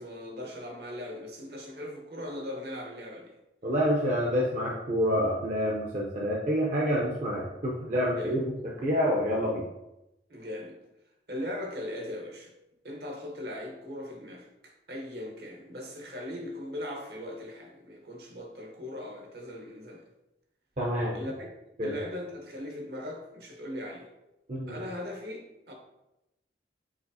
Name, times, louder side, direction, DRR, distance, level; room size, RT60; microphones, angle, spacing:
voice 1, 0.0-3.3 8.0-8.3 10.3-10.8 11.3-12.5 12.8-20.0 21.1-21.5 21.8-24.1 24.7-25.7, left 1 dB, 65° right, 1 dB, 0.9 m, -39 dB
voice 2, 3.6-8.6 8.8-9.6 20.8-21.2 21.8-21.9 24.5-24.8, equal, 40° right, -3 dB, 0.6 m, -27 dB
4.9 x 4.0 x 2.7 m, 0.92 s
head